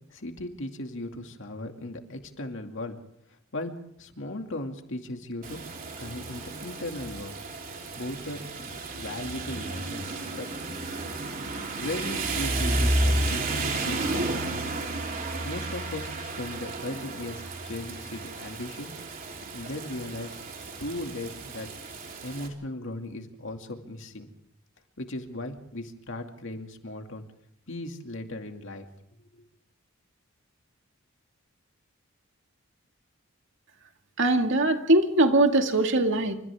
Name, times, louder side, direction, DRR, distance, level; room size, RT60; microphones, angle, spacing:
voice 1, 0.1-3.0 3.5-5.6 6.0-7.4 7.9-10.5 11.7-14.7 15.4-19.0 19.5-20.4 20.8-21.7 22.2-24.3 25.0-27.2 27.7-28.9 29.3-29.4, left 1 dB, 60° left, 4 dB, 2.4 m, -37 dB
Rain, 5.4-22.5, right 2 dB, 40° right, 3.6 m, -32 dB
voice 2, 34.2-36.3, right 2 dB, 60° right, 4 dB, 2.2 m, -21 dB
29.0 x 26.0 x 3.6 m, 0.70 s
head